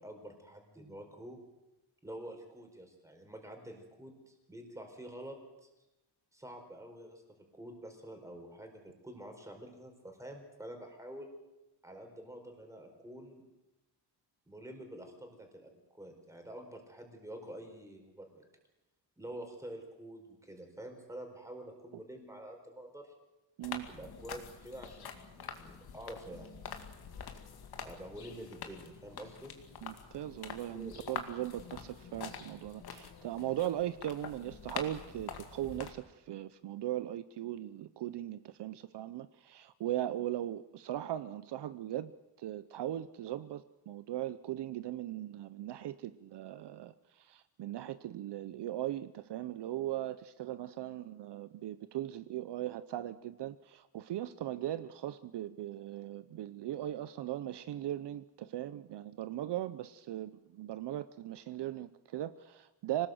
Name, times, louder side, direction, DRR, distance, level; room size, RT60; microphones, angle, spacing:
voice 1, 0.0-1.4 2.0-5.4 5.6-5.7 6.3-7.2 7.5-11.3 11.8-13.4 14.5-18.5 19.2-23.1 23.9-26.8 27.8-29.5 30.7-30.9, right 1 dB, 5° right, 3 dB, 4.5 m, -48 dB
sound 1, 23.6-35.9, left 6 dB, 55° left, 2.4 m, -46 dB
voice 2, 29.8-42.1 42.4-63.1, right 13 dB, 65° right, 13 dB, 0.8 m, -39 dB
26.0 x 19.0 x 7.8 m, 0.96 s
wide cardioid pair, 175°, 44 cm